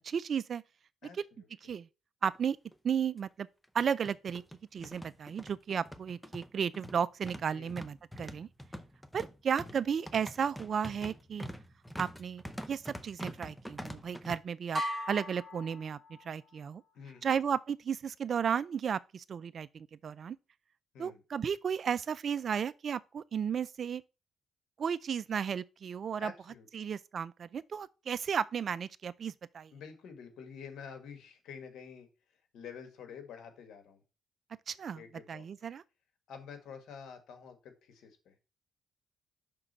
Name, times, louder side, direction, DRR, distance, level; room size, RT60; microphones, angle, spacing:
voice 1, 0.0-0.6 1.2-1.3 1.6-1.9 2.2-2.6 2.8-3.5 3.7-4.4 4.7-8.5 9.1-11.5 12.0-14.8 15.1-16.8 17.2-20.4 21.0-24.0 24.8-26.3 26.7-29.7 34.7-35.0 35.3-35.8, right 7 dB, 50° right, 0.4 m, -34 dB
voice 2, 1.0-1.7 7.5-7.8 16.9-17.3 20.9-21.2 26.2-26.9 29.7-32.1 32.5-34.0 34.9-35.7 36.3-38.3, left 6 dB, 80° left, 1.6 m, -49 dB
sound 1, 2.3-2.4 2.7-2.8 3.6-14.4, equal, ahead, 0.6 m, -45 dB
sound 2, 14.7-16.5, equal, 20° right, 2.3 m, -38 dB
6.0 x 3.8 x 5.4 m
cardioid pair, 90°, 0 cm